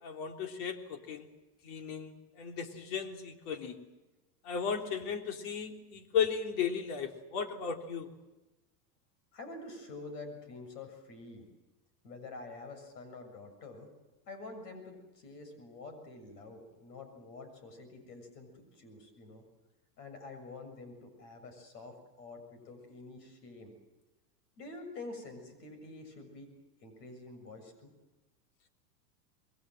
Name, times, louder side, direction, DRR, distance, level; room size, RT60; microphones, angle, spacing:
voice 1, 0.0-1.3 1.6-3.8 4.4-8.1, left 7 dB, 65° left, 5 dB, 3.3 m, -35 dB
voice 2, 9.3-11.5 12.0-13.9 14.3-19.4 20.0-23.7 24.6-26.5 26.8-27.9, left 3 dB, 80° left, 7 dB, 7.1 m, -47 dB
26.5 x 21.5 x 7.7 m, 1.1 s
hypercardioid pair, 110°, 48 cm